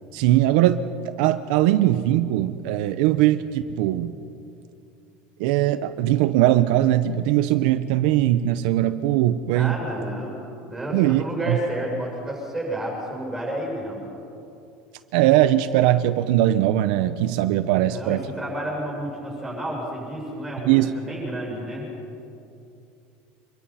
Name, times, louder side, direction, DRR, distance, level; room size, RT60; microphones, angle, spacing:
voice 1, 0.1-4.1 5.4-9.8 10.9-11.6 15.1-18.3 20.7-20.9, right 13 dB, 65° right, 10 dB, 0.8 m, -20 dB
voice 2, 9.5-10.4 10.7-14.0 17.8-21.9, right 1 dB, 5° right, -2 dB, 7.0 m, -31 dB
25.5 x 22.5 x 5.7 m, 2.7 s
cardioid pair, 170°, 5 cm